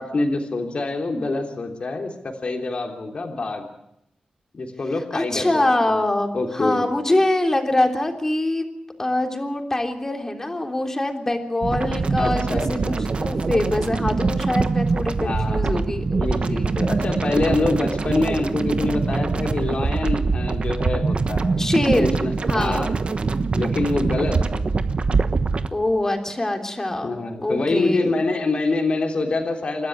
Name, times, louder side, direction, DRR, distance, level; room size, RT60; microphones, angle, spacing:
voice 1, 0.0-3.6 4.5-6.0 6.3-6.8 12.2-13.1 15.2-15.9 16.1-21.6 22.0-22.9 23.5-24.7 27.0-29.9, left 3 dB, 45° left, 3 dB, 3.3 m, -26 dB
voice 2, 5.1-8.7 9.0-12.8 13.2-16.2 16.5-16.7 21.5-22.1 22.5-22.9 25.7-28.2, left 1 dB, 20° left, 4 dB, 3.4 m, -24 dB
sound 1, 11.6-25.7, right 4 dB, 45° right, 1.1 m, -23 dB
29.0 x 13.0 x 9.6 m, 0.79 s
wide cardioid pair, 105°, 3 cm